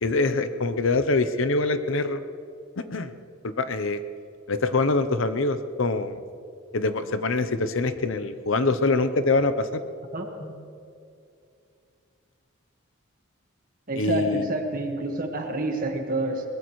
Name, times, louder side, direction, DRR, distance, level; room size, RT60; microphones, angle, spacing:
voice 1, 0.0-2.2 2.9-3.1 3.4-4.0 4.5-6.2 6.7-9.8 14.0-14.5, left 3 dB, 65° left, 10 dB, 0.7 m, -24 dB
voice 2, 10.1-10.5 13.9-16.4, right 1 dB, 40° right, 3 dB, 1.6 m, -28 dB
22.5 x 20.5 x 3.2 m, 2.5 s
head